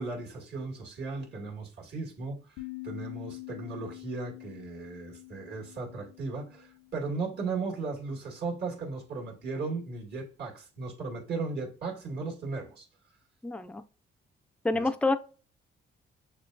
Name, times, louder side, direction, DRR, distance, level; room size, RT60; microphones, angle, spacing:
voice 1, 0.0-12.9 14.7-14.9, right 4 dB, 55° right, 1.8 m, -36 dB
sound 1, 2.6-7.7, left 23 dB, 85° left, 0.7 m, -46 dB
voice 2, 13.4-13.8 14.6-15.2, left 2 dB, 5° left, 0.4 m, -27 dB
6.6 x 2.3 x 2.6 m
cardioid pair, 90°, 20 cm